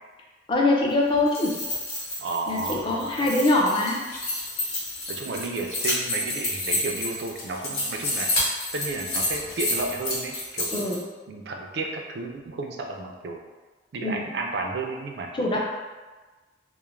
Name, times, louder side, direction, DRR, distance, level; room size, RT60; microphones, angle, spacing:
voice 1, 0.5-1.6 2.5-4.0 10.7-11.0 14.0-14.3 15.3-15.6, left 2 dB, 25° left, -2 dB, 0.4 m, -23 dB
sound 1, 1.1-11.0, left 1 dB, 55° left, 0.8 m, -30 dB
voice 2, 2.2-3.1 5.1-10.9 11.3-13.4 13.9-15.3, right 3 dB, 60° right, 2 dB, 0.3 m, -32 dB
2.3 x 2.0 x 3.0 m, 1.3 s
head